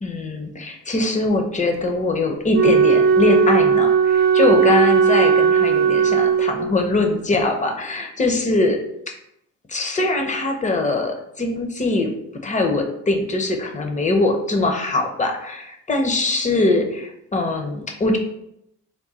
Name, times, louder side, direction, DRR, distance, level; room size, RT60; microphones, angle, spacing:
voice 1, 0.0-8.8 9.7-12.1 12.4-18.2, left 2 dB, 25° left, 3 dB, 0.7 m, -22 dB
Wind instrument woodwind instrument, 2.5-6.9, right 6 dB, 35° right, 0.5 m, -17 dB
3.6 x 2.2 x 4.1 m, 0.78 s
cardioid pair, 90°, 30 cm